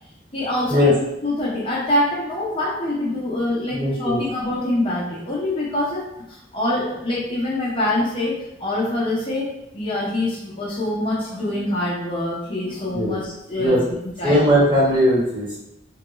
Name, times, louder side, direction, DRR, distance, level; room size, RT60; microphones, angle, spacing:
voice 1, 0.3-13.8 14.2-14.5, left 1 dB, 30° left, -6 dB, 0.7 m, -25 dB
voice 2, 3.7-4.2 12.9-13.1 13.6-13.8 14.2-15.6, equal, 25° right, -7 dB, 1.2 m, -18 dB
3.5 x 2.2 x 3.0 m, 0.85 s
head